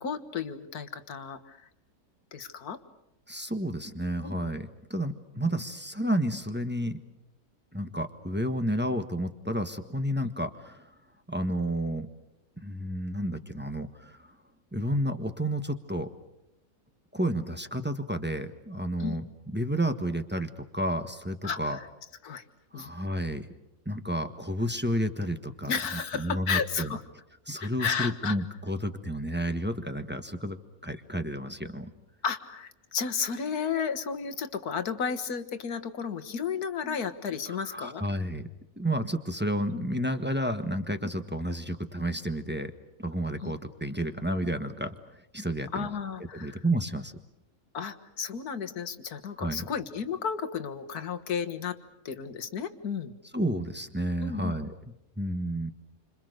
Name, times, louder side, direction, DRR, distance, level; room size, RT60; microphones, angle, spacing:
voice 1, 0.0-1.7 2.3-2.8 4.2-4.5 10.2-10.3 19.0-19.2 21.4-21.9 22.2-22.4 22.7-22.9 25.7-27.0 27.6-28.4 32.2-38.0 39.7-39.8 41.0-41.1 43.4-43.5 45.7-46.6 47.7-51.8 52.1-53.1 54.2-54.6, left 6 dB, 70° left, 10 dB, 1.9 m, -33 dB
voice 2, 3.3-7.0 7.7-10.9 11.3-12.1 12.6-14.3 14.7-16.1 17.1-19.3 19.5-21.8 22.7-23.5 23.8-25.7 26.2-27.0 27.5-30.6 30.8-31.9 36.8-37.0 37.5-38.5 38.8-42.7 43.0-44.9 45.3-45.9 46.3-47.1 49.4-49.6 53.3-54.7 55.2-55.7, right 1 dB, 5° right, 7 dB, 1.3 m, -31 dB
29.0 x 26.5 x 6.7 m, 0.86 s
omnidirectional pair, 1.7 m